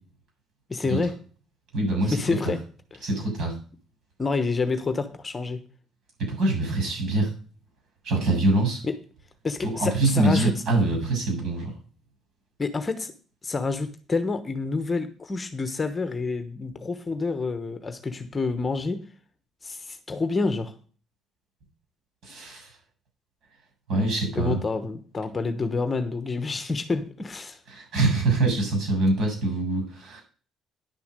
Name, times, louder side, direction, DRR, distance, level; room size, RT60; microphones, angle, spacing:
voice 1, 0.7-1.1 2.0-2.6 2.9-3.0 4.2-5.6 8.8-9.0 9.4-10.6 12.6-13.1 13.4-19.0 19.6-20.7 24.4-27.6, left 3 dB, 20° left, 10 dB, 1.0 m, -28 dB
voice 2, 1.7-2.2 3.0-3.6 6.2-7.3 8.0-8.8 9.6-11.7 22.2-22.7 23.9-24.6 27.7-30.2, right 2 dB, 60° right, 3 dB, 7.7 m, -24 dB
10.5 x 6.8 x 6.6 m, 0.40 s
cardioid pair, 155°, 0 cm